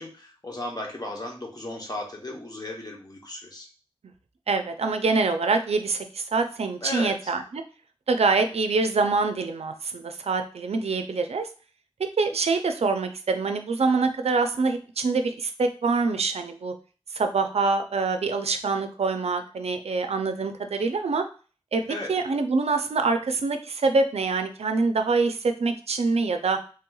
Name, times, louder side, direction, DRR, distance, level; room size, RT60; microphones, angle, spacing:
voice 1, 0.0-3.7 6.8-7.3 21.9-22.1, left 1 dB, 40° left, 0 dB, 0.8 m, -35 dB
voice 2, 4.5-7.6 8.1-11.5 12.0-16.7 17.1-21.2 21.7-21.8 22.1-26.6, right 4 dB, 90° right, 7 dB, 0.4 m, -25 dB
3.3 x 2.9 x 2.3 m, 0.37 s
wide cardioid pair, 70°, 10 cm